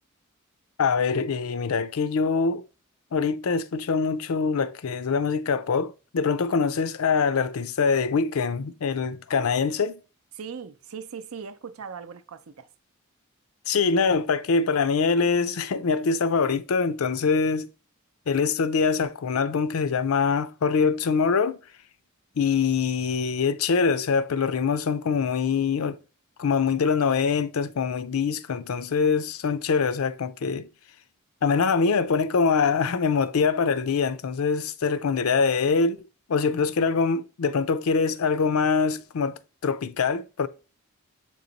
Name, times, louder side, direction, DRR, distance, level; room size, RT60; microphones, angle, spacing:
voice 1, 0.8-2.6 3.1-10.0 13.7-17.7 18.3-21.6 22.4-26.0 26.4-30.7 31.4-36.0 36.3-40.5, left 5 dB, 80° left, 0.5 m, -24 dB
voice 2, 10.3-12.7, right 6 dB, 80° right, 0.6 m, -39 dB
7.7 x 3.1 x 4.0 m
head